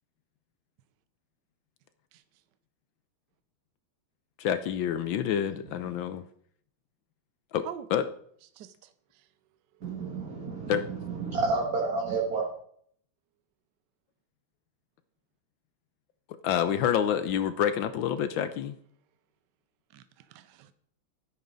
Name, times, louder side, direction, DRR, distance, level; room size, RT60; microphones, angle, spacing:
voice 1, 2.1-2.4 7.6-7.9 8.5-9.3 9.7-9.8 18.4-18.5 19.9-20.7, right 10 dB, 65° right, 12 dB, 1.1 m, -46 dB
voice 2, 4.4-6.2 7.5-7.7 7.9-8.0 10.7-10.8 16.4-18.7, left 9 dB, 70° left, 12 dB, 1.3 m, -27 dB
voice 3, 9.8-12.4, right 4 dB, 45° right, -2 dB, 2.3 m, -31 dB
12.5 x 10.5 x 4.0 m, 0.63 s
omnidirectional pair, 2.4 m